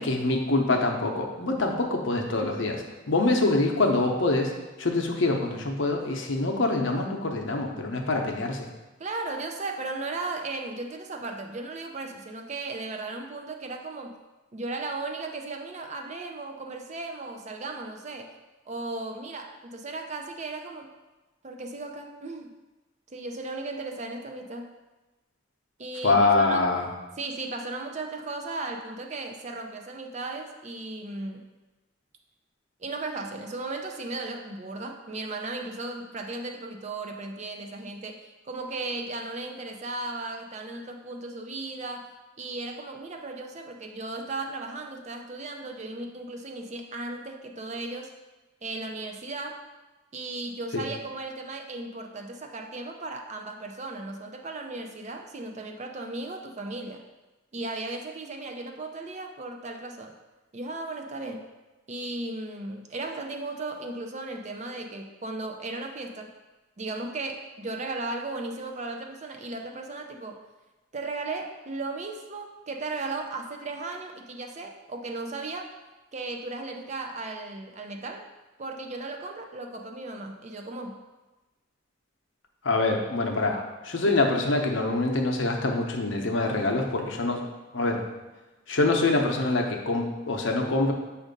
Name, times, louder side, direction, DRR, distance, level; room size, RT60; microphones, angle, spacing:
voice 1, 0.0-4.5 4.8-8.7 26.0-26.9 50.7-50.8 82.6-83.6 83.9-87.4 87.7-88.0 88.7-90.9, left 2 dB, 65° left, 2 dB, 0.7 m, -25 dB
voice 2, 9.0-14.1 14.5-18.3 18.7-20.9 21.4-22.5 23.1-24.7 25.8-26.7 27.2-31.5 32.8-42.1 42.4-48.1 48.6-49.6 50.1-57.0 57.5-60.1 60.5-61.5 61.9-66.3 66.8-70.4 70.9-75.7 76.1-78.3 78.6-81.0 83.5-83.7, right 2 dB, 35° right, 4 dB, 0.5 m, -36 dB
7.2 x 2.5 x 5.2 m, 1.1 s
head